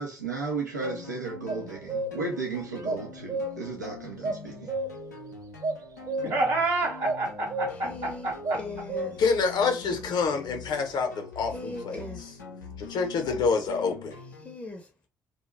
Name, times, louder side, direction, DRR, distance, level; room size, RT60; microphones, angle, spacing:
voice 1, 0.0-4.5, right 3 dB, 90° right, 0.6 m, -34 dB
sound 1, 0.8-14.5, left 4 dB, 85° left, 0.5 m, -44 dB
sound 2, 1.5-2.3 2.8-3.8 4.2-5.2 5.6-6.7 7.0-7.2 7.5-8.0 8.4-9.4, right 2 dB, 40° right, 0.4 m, -32 dB
voice 2, 6.2-8.6, right 2 dB, 65° right, 0.9 m, -28 dB
voice 3, 7.7-9.2 9.9-10.0 11.5-12.2 14.4-14.9, left 1 dB, 15° left, 0.6 m, -40 dB
voice 4, 9.2-12.3 12.8-14.2, left 5 dB, 50° left, 0.7 m, -27 dB
2.3 x 2.2 x 3.2 m
figure-of-eight pair, 45°, 9 cm